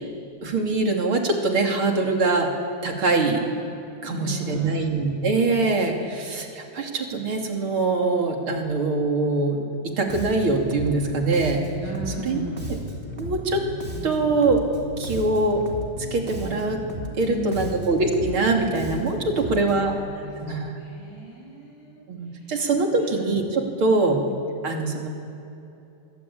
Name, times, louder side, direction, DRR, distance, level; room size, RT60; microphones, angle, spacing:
voice 1, 0.4-2.5 2.8-3.4 4.0-11.6 12.2-12.4 13.2-13.6 14.0-14.6 15.0-15.6 16.1-16.8 17.2-20.0 20.4-20.7 22.1-24.2 24.6-25.1, right 3 dB, 80° right, 2 dB, 3.7 m, -23 dB
voice 2, 4.1-4.8 11.8-12.7 17.2-17.8 19.4-19.7 19.9-22.0 22.4-22.5 22.9-23.2 23.9-24.2, right 1 dB, 70° left, -2 dB, 7.8 m, -37 dB
Bass guitar, 10.1-20.0, right 1 dB, 25° right, 3.2 m, -35 dB
26.0 x 23.0 x 8.6 m, 2.8 s
omnidirectional pair, 2.3 m